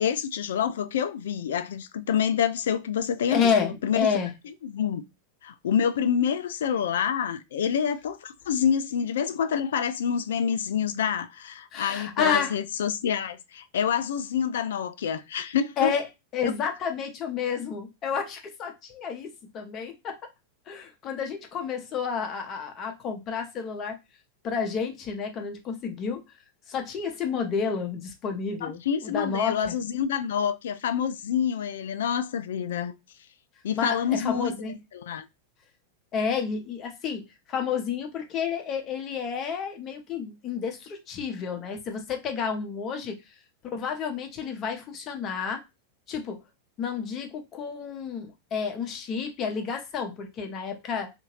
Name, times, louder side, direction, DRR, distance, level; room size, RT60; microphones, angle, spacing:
voice 1, 0.0-4.1 4.6-5.0 5.4-15.9 28.6-32.9 33.6-34.5 34.9-35.3, left 8 dB, 60° left, 0.3 m, -27 dB
voice 2, 3.3-4.3 11.7-12.5 15.8-16.1 16.3-20.2 20.7-24.0 24.4-26.2 26.7-29.8 33.8-34.7 36.1-43.2 43.6-45.6 46.1-46.4 46.8-51.1, left 6 dB, 30° left, 0.8 m, -30 dB
2.7 x 2.5 x 3.0 m
figure-of-eight pair, 90°, 0 cm